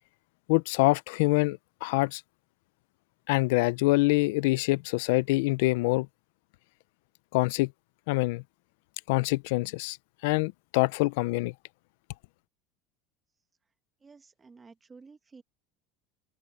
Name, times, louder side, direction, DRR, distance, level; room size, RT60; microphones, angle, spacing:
voice 1, 0.5-2.2 3.3-6.1 7.3-7.7 8.1-8.4 9.1-10.0 10.2-11.5, left 22 dB, 75° left, 0.5 m, -25 dB
voice 2, 14.0-15.4, right 4 dB, 20° right, 1.8 m, -52 dB
supercardioid pair, 115°, 0 cm